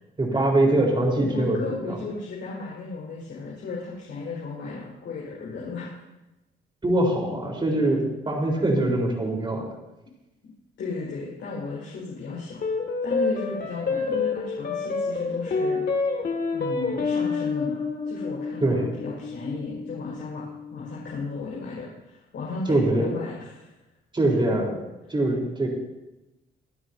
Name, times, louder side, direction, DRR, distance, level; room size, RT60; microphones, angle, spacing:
voice 1, 0.2-1.6 1.9-2.0 6.8-9.7 18.6-18.9 22.7-23.1 24.1-24.8 25.1-25.7, right 1 dB, 25° right, 0 dB, 4.3 m, -23 dB
voice 2, 1.3-6.0 10.8-12.6 13.0-15.8 16.5-17.8 18.0-20.4 20.7-23.7, left 3 dB, 70° left, -6 dB, 5.4 m, -35 dB
sound 1, 12.6-21.2, left 4 dB, 50° left, 2.3 m, -28 dB
26.5 x 9.6 x 2.8 m, 0.98 s
cardioid pair, 90°, 20 cm